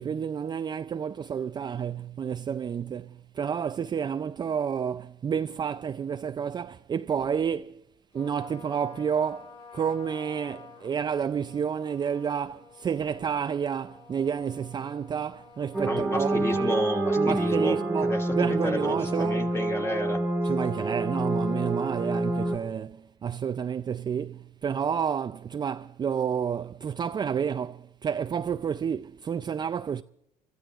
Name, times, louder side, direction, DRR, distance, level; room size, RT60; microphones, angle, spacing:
voice 1, 0.0-7.8 8.1-16.8 17.2-19.4 20.4-30.0, right 7 dB, 30° right, 0.4 m, -30 dB
Trumpet, 8.1-17.5, left 5 dB, 40° left, 7.4 m, -50 dB
sound 1, 15.7-22.6, right 2 dB, 5° right, 1.7 m, -27 dB
voice 2, 15.8-20.2, left 2 dB, 15° left, 2.2 m, -32 dB
30.0 x 14.0 x 2.4 m
supercardioid pair, 90°, 15 cm